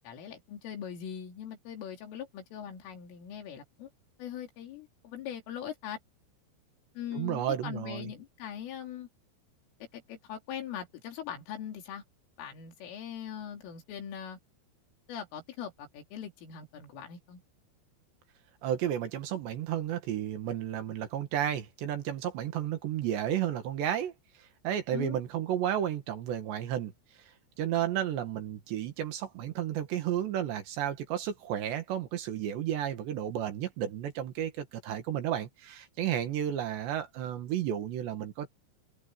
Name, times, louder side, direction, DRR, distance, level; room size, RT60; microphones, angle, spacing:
voice 1, 0.0-3.9 4.2-6.0 7.0-9.1 9.8-12.0 12.4-14.4 15.1-17.4 24.9-25.2, left 9 dB, 75° left, 5.9 m, -41 dB
voice 2, 7.1-8.1 18.6-24.1 24.6-26.9 27.6-38.5, right 10 dB, 65° right, 3.7 m, -32 dB
open air
omnidirectional pair, 5.8 m